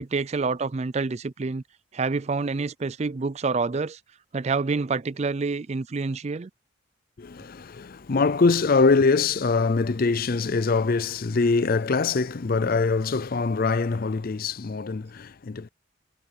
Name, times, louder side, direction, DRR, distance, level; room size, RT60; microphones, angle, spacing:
voice 1, 0.0-1.6 1.9-4.0 4.3-6.5, right 4 dB, 30° right, 0.4 m, -27 dB
voice 2, 7.2-15.7, left 4 dB, 45° left, 0.5 m, -23 dB
head